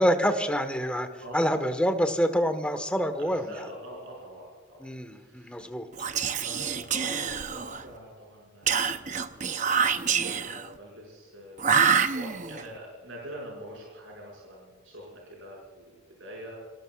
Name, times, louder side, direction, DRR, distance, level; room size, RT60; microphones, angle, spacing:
voice 1, 0.0-1.1 1.3-3.7 4.8-5.9, equal, 5° left, 7 dB, 1.3 m, -26 dB
voice 2, 1.2-1.5 3.2-5.6 6.2-9.3 9.5-11.8 12.1-16.6, equal, 70° right, -2 dB, 5.9 m, -45 dB
Whispering, 5.9-7.9 8.7-10.7 11.6-12.6, right 6 dB, 35° right, 0.7 m, -26 dB
27.0 x 18.5 x 2.4 m, 1.5 s
head